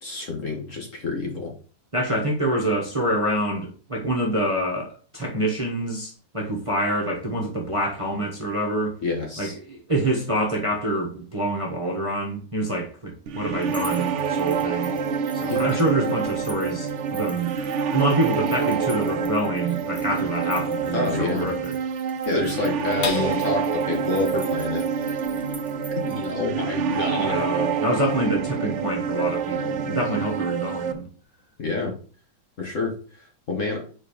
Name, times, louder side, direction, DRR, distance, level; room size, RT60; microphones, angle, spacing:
voice 1, 0.0-1.5 9.0-9.5 15.4-15.8 20.9-21.5 22.2-24.8 26.0-27.5 31.6-31.9 32.6-32.9 33.5-33.8, left 3 dB, 45° left, 1.5 m, -28 dB
voice 2, 1.9-8.9 9.4-15.0 15.3-21.7 27.2-31.1, right 1 dB, 20° right, 1.1 m, -26 dB
sound 1, 13.3-30.9, right 6 dB, 80° right, 0.6 m, -27 dB
sound 2, 13.6-26.3, right 1 dB, ahead, 1.0 m, -47 dB
sound 3, 23.0-29.7 30.2-30.3 30.7-31.2, left 6 dB, 60° left, 1.4 m, -40 dB
5.1 x 4.5 x 5.0 m
omnidirectional pair, 2.0 m